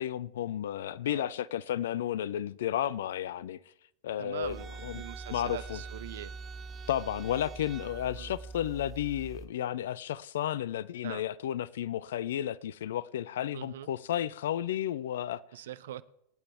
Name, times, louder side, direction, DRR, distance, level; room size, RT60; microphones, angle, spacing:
voice 1, 0.0-3.6 4.0-4.6 4.8-5.0 5.3-5.8 6.9-15.4, left 11 dB, 60° left, 0.5 m, -32 dB
voice 2, 4.2-6.4 8.2-8.3 11.0-11.3 13.5-13.9 15.5-16.0, right 12 dB, 60° right, 0.6 m, -42 dB
sound 1, 4.4-9.5, right 4 dB, 20° right, 1.6 m, -43 dB
25.5 x 9.0 x 3.5 m
figure-of-eight pair, 90°, 0 cm